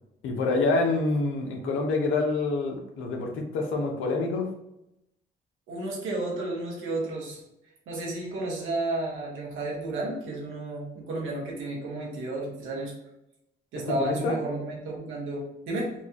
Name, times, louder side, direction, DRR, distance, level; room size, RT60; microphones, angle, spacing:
voice 1, 0.2-4.5 13.8-14.4, left 3 dB, 85° left, 2 dB, 0.8 m, -27 dB
voice 2, 5.7-7.4 7.9-12.9 13.7-15.9, right 2 dB, 85° right, -3 dB, 1.4 m, -32 dB
4.5 x 2.3 x 2.8 m, 0.87 s
cardioid pair, 90°, 20 cm